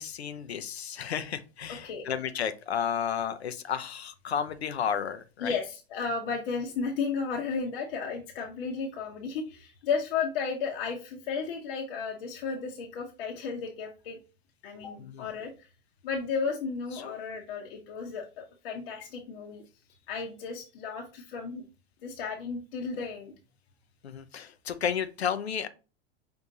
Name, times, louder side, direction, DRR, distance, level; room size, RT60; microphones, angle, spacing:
voice 1, 0.0-5.5 15.0-15.3 17.0-17.2 24.0-25.7, left 8 dB, 85° left, 0.6 m, -32 dB
voice 2, 1.7-2.1 5.4-14.2 14.6-15.7 16.0-19.6 20.1-21.6 22.0-23.3, left 5 dB, 65° left, 0.9 m, -34 dB
5.4 x 3.4 x 2.8 m
hypercardioid pair, 90°, 31 cm